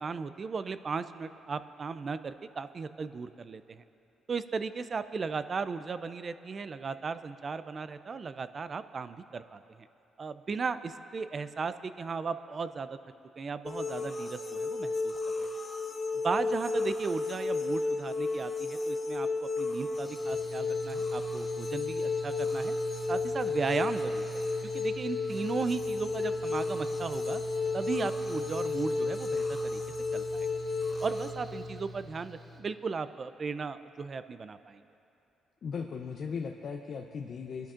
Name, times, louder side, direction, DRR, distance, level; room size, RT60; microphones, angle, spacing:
voice 1, 0.0-3.8 4.3-9.9 10.2-13.0 13.4-15.5 16.1-22.7 23.1-24.2 24.7-27.4 27.7-29.8 30.1-30.5 31.0-34.8, right 5 dB, 40° right, 12 dB, 0.4 m, -36 dB
sound 1, 13.7-31.3, left 3 dB, 35° left, 0.9 m, -32 dB
Mechanical fan, 20.0-32.6, left 1 dB, 20° right, 2.9 m, -44 dB
voice 2, 35.6-37.7, left 5 dB, 55° left, 3 dB, 0.6 m, -37 dB
21.5 x 11.5 x 2.5 m, 2.8 s
cardioid pair, 90°, 0 cm